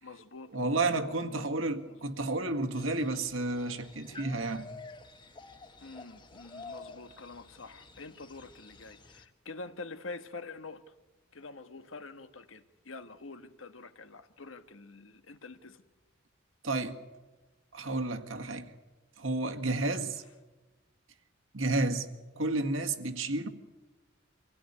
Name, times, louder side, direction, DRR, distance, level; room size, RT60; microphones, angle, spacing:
voice 1, 0.0-2.1 5.8-10.9 11.3-15.8 22.3-22.4, left 3 dB, 75° left, 9 dB, 1.4 m, -47 dB
voice 2, 0.5-4.7 16.6-17.0 17.7-18.7 19.2-20.2 21.5-22.1 22.4-23.5, right 2 dB, 75° right, 5 dB, 1.8 m, -31 dB
sound 1, 2.7-9.3, left 3 dB, 25° left, 1.4 m, -50 dB
25.5 x 16.5 x 9.8 m, 1.2 s
head